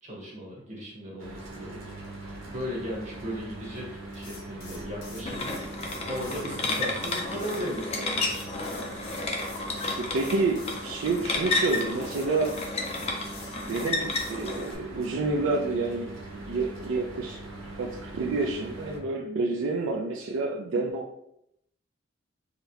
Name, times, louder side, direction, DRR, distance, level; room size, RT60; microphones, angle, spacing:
voice 1, 0.0-8.4, equal, 35° right, -4 dB, 1.0 m, -37 dB
Mechanical fan, 1.2-19.0, right 2 dB, 85° right, 0.8 m, -42 dB
sound 1, 4.1-7.6 8.2-10.8 11.6-14.3, left 3 dB, 90° left, 1.1 m, -46 dB
sound 2, 5.3-14.7, left 3 dB, 30° left, 0.4 m, -32 dB
voice 2, 10.1-12.5 13.6-17.4 17.8-21.1, right 3 dB, 65° right, -1 dB, 0.3 m, -29 dB
3.9 x 2.1 x 2.7 m, 0.78 s
head